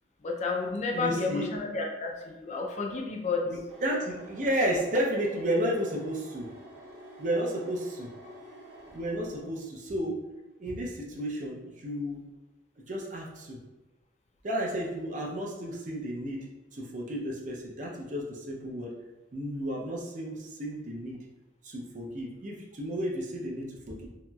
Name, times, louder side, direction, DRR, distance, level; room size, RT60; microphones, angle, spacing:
voice 1, 0.2-3.4, left 4 dB, 40° left, 1 dB, 0.4 m, -31 dB
voice 2, 0.9-1.5 3.5-6.5 7.2-8.1 8.9-10.2 10.6-12.2 12.9-13.6 14.4-18.9 19.3-21.2 21.6-24.1, equal, 45° right, -1 dB, 0.5 m, -32 dB
sound 1, 3.7-9.6, equal, 85° right, 0.7 m, -49 dB
2.9 x 2.8 x 2.2 m, 1.1 s
head